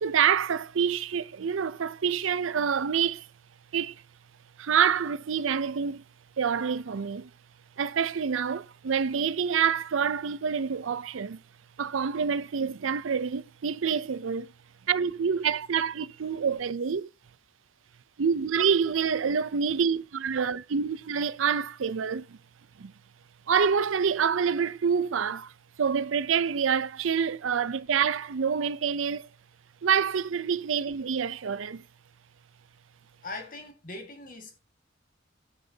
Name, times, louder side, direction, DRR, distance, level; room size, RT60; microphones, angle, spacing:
voice 1, 0.0-3.3 3.7-4.0 4.6-6.0 6.4-7.3 7.8-11.4 11.8-14.5 14.9-17.1 18.2-22.4 22.8-22.9 23.5-25.5 25.8-29.3 29.8-31.8, right 7 dB, 80° right, 0.5 m, -27 dB
voice 2, 33.2-34.6, left 2 dB, 45° left, 1.8 m, -40 dB
10.5 x 9.4 x 2.8 m
head